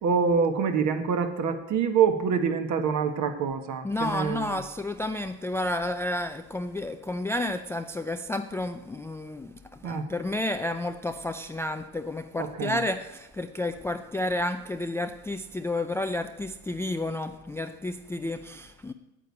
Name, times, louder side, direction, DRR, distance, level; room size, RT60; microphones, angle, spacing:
voice 1, 0.0-4.6 9.8-10.1 12.4-12.8, right 6 dB, 45° right, 7 dB, 1.6 m, -26 dB
voice 2, 3.8-18.9, left 1 dB, 5° left, 9 dB, 0.4 m, -31 dB
9.0 x 8.5 x 8.5 m, 1.0 s
supercardioid pair, 105°, 40 cm